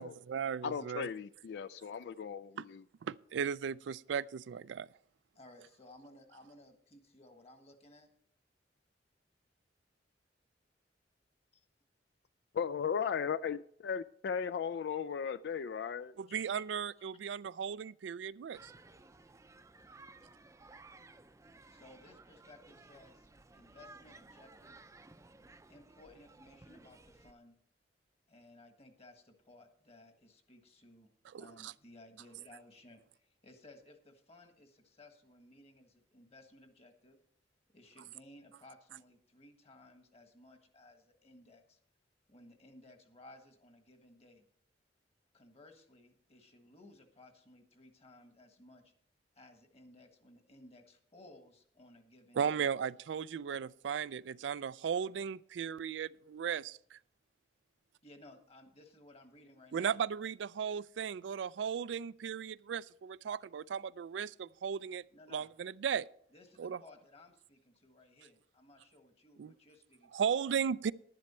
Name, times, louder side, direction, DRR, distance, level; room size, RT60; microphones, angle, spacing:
voice 1, 0.0-1.1 2.6-2.7 3.0-4.9 16.2-18.7 31.3-31.7 52.4-57.0 59.7-65.0 65.3-66.1 66.6-66.8 69.4-69.5 70.1-70.9, right 7 dB, 80° right, 0.3 m, -36 dB
voice 2, 0.6-2.8 12.5-16.1, left 7 dB, 65° left, 0.3 m, -36 dB
voice 3, 5.3-8.1 11.5-11.6 16.3-16.5 16.9-17.0 21.7-24.9 25.7-27.6 28.3-37.2 37.7-41.8 42.3-44.5 45.3-48.9 49.3-52.6 58.0-60.0 65.1-65.5 66.3-70.3, left 2 dB, 35° left, 1.5 m, -59 dB
sound 1, 18.5-27.3, right 3 dB, 15° right, 0.5 m, -57 dB
11.0 x 10.5 x 4.3 m
head